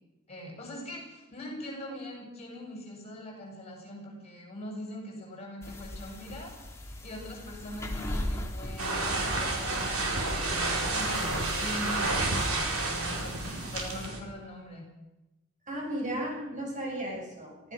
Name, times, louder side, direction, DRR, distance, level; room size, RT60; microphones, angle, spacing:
voice 1, 0.3-6.6 6.9-14.9, left 1 dB, 30° left, 0 dB, 7.3 m, -42 dB
sound 1, 5.6-14.1, left 1 dB, 15° left, 2.8 m, -40 dB
sound 2, 8.8-14.2, right 2 dB, 70° right, 4.7 m, -30 dB
voice 2, 15.7-17.7, right 1 dB, 35° right, -1 dB, 7.7 m, -35 dB
25.5 x 16.0 x 6.4 m, 1.0 s
head